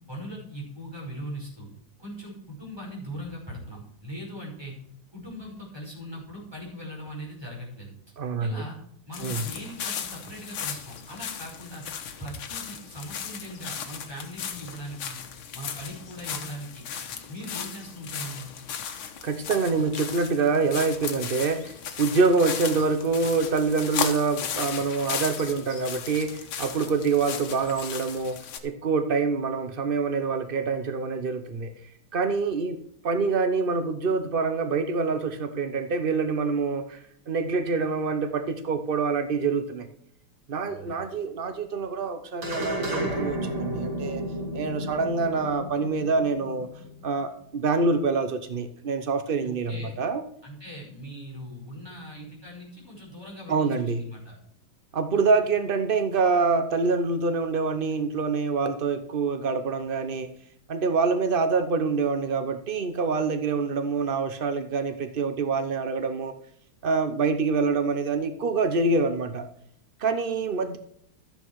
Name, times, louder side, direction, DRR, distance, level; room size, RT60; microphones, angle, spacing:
voice 1, 0.1-1.7 2.0-4.7 5.1-7.9 8.4-8.8 9.1-11.8 12.2-15.2 15.5-16.9 17.3-18.5 40.7-41.0 49.4-49.9 50.4-54.4, equal, 10° right, -2 dB, 5.2 m, -40 dB
voice 2, 8.2-8.6 9.2-9.4 19.2-28.4 28.6-31.7 32.1-32.8 33.0-37.0 37.3-39.9 40.5-44.2 44.5-46.7 47.0-50.2 53.5-54.0 54.9-60.3 60.7-66.3 66.8-69.4 70.0-70.8, right 4 dB, 90° right, 9 dB, 0.4 m, -26 dB
sound 1, 9.1-28.6, left 8 dB, 80° left, 2.0 m, -36 dB
sound 2, 42.4-47.0, right 1 dB, 65° right, 4.1 m, -32 dB
13.5 x 8.7 x 4.7 m, 0.68 s
omnidirectional pair, 2.3 m